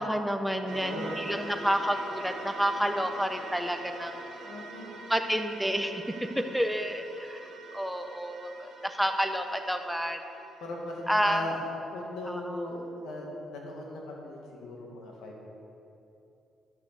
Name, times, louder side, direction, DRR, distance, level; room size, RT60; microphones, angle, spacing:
voice 1, 0.0-4.3 5.1-6.0 6.5-7.4 7.7-10.2 11.1-11.5 12.3-12.6, equal, ahead, 5 dB, 0.8 m, -29 dB
voice 2, 0.6-1.2 4.4-4.9 10.6-11.6 11.9-15.5, left 2 dB, 80° left, -1 dB, 2.0 m, -38 dB
sound 1, 0.7-11.3, right 2 dB, 70° right, 1.8 m, -44 dB
10.5 x 6.0 x 6.8 m, 2.8 s
cardioid pair, 90°, 0 cm